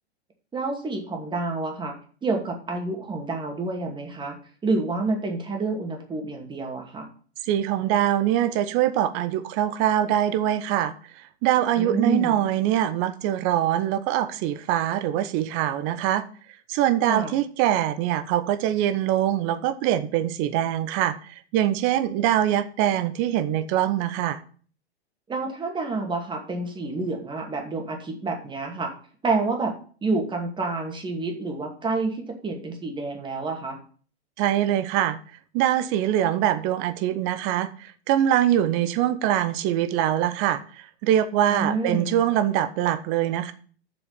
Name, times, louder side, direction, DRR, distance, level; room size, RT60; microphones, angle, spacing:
voice 1, 0.5-1.9 2.2-4.4 4.6-7.1 11.8-12.5 17.1-17.4 25.3-28.9 29.2-29.7 30.0-33.8 41.5-42.2, right 3 dB, 15° right, 2.3 m, -28 dB
voice 2, 7.5-10.9 11.4-16.2 16.7-21.2 21.5-24.4 34.4-35.2 35.5-40.6 41.0-43.5, right 11 dB, 35° right, 1.1 m, -23 dB
6.9 x 6.9 x 7.1 m
figure-of-eight pair, 105°, 33 cm